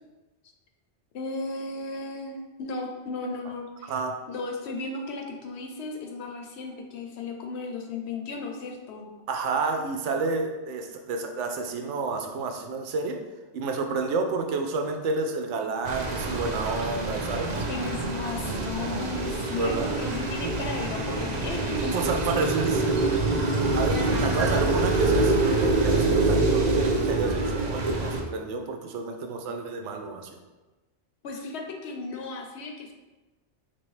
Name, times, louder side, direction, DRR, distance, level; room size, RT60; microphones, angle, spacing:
voice 1, 1.1-4.0 4.3-9.1 17.7-22.0 24.2-24.4 31.2-32.9, left 3 dB, 70° left, 2 dB, 0.8 m, -35 dB
voice 2, 9.3-13.2 13.5-17.6 19.5-19.9 21.9-23.0 23.7-30.4, right 3 dB, 80° right, 4 dB, 0.9 m, -30 dB
sound 1, 15.9-28.2, right 2 dB, 50° right, 0.5 m, -25 dB
4.3 x 3.0 x 3.1 m, 1.1 s
omnidirectional pair, 1.2 m